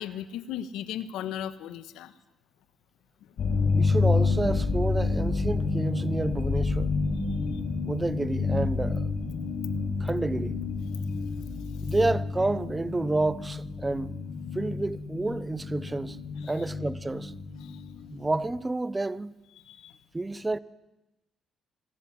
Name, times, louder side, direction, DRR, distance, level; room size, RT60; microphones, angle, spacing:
voice 1, 0.0-2.1 9.8-10.1 11.7-11.9 16.4-16.6 17.6-17.8 19.6-20.0, left 10 dB, 90° left, 1.5 m, -38 dB
sound 1, 3.4-18.6, left 4 dB, 65° left, 6.0 m, -29 dB
voice 2, 3.7-6.9 7.9-9.1 10.0-10.6 11.8-14.1 14.5-16.2 16.5-17.3 18.1-19.3 20.1-20.6, right 2 dB, 20° right, 1.0 m, -29 dB
25.0 x 20.0 x 9.7 m
cardioid pair, 90°, 0 cm